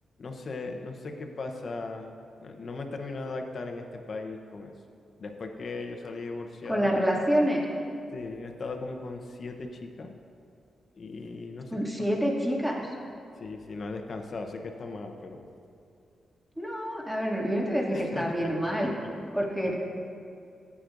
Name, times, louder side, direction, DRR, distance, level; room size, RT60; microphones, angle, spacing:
voice 1, 0.2-4.7 5.2-6.9 8.1-10.1 11.0-12.1 13.4-15.5 17.9-19.1, left 3 dB, 60° left, 4 dB, 0.9 m, -38 dB
voice 2, 6.7-7.6 11.7-12.9 16.6-19.0 19.3-19.8, equal, 10° right, -3 dB, 2.5 m, -27 dB
14.5 x 8.5 x 2.6 m, 2.5 s
supercardioid pair, 45°, 0 cm